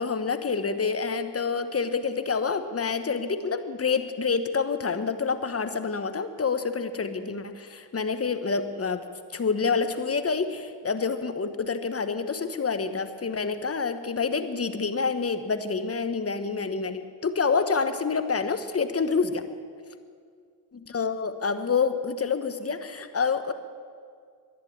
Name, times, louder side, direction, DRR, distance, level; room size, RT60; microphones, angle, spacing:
voice 1, 0.0-19.4 20.9-23.5, left 5 dB, 30° left, 10 dB, 1.2 m, -27 dB
11.0 x 11.0 x 8.8 m, 2.1 s
supercardioid pair, 45°, 48 cm